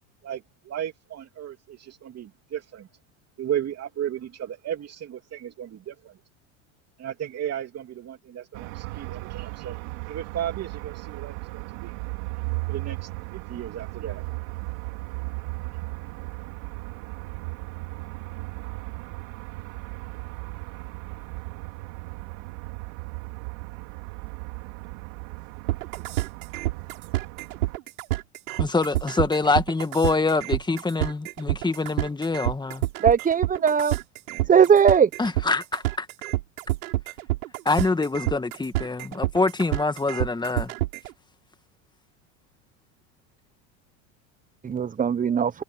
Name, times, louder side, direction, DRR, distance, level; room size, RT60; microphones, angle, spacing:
voice 1, 0.2-2.9 3.4-6.2 7.0-9.8 10.1-11.9 12.7-14.2, right 10 dB, 40° right, 3.0 m, -34 dB
sound 1, 8.5-27.8, right 25 dB, 70° right, 4.2 m, -36 dB
sound 2, 25.7-41.1, right 17 dB, 85° right, 6.6 m, -28 dB
voice 2, 28.6-32.8 35.2-36.1 37.7-40.7, left 3 dB, 10° left, 1.8 m, -25 dB
voice 3, 33.0-33.9 34.5-35.1 44.6-45.5, right 7 dB, 20° right, 1.1 m, -19 dB
supercardioid pair, 105°, 41 cm